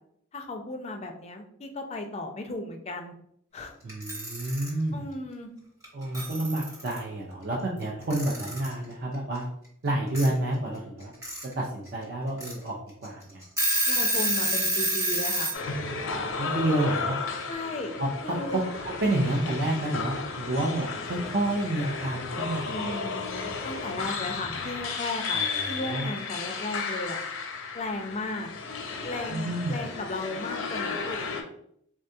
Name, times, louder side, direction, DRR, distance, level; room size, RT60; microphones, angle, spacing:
voice 1, 0.3-3.1 3.5-3.7 4.9-5.5 13.9-15.5 17.5-17.9 18.2-18.6 22.7-27.2 27.7-28.5 29.0-31.2, left 2 dB, 30° left, 4 dB, 0.4 m, -35 dB
voice 2, 3.8-5.1 5.9-9.5 9.8-11.1 11.6-12.8 13.0-13.4 16.2-17.1 18.0-23.1 25.3-26.1 29.3-29.8, right 1 dB, 50° right, -3 dB, 0.5 m, -29 dB
Alarm / Clock, 3.9-4.7 5.8-5.9 6.1-7.0 8.1-8.7 10.1-10.3 11.0-11.4 11.9-12.0 12.4-12.5 13.0-13.1 13.4-15.6, right 1 dB, 15° right, 0.9 m, -27 dB
sound 1, 15.5-31.4, left 4 dB, 85° left, 0.5 m, -34 dB
3.6 x 2.3 x 2.6 m, 0.70 s
head